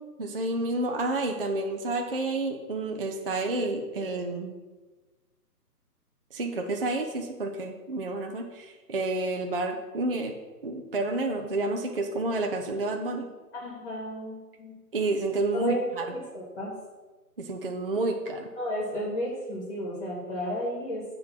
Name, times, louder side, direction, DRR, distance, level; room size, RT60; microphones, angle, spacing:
voice 1, 0.2-4.5 6.3-10.3 10.6-13.3 14.9-16.0 17.4-18.5, right 2 dB, 35° right, 3 dB, 0.4 m, -30 dB
voice 2, 13.5-14.8 15.5-16.7 18.6-21.0, equal, 35° left, -4 dB, 2.1 m, -33 dB
6.8 x 3.7 x 5.7 m, 1.3 s
figure-of-eight pair, 145°, 49 cm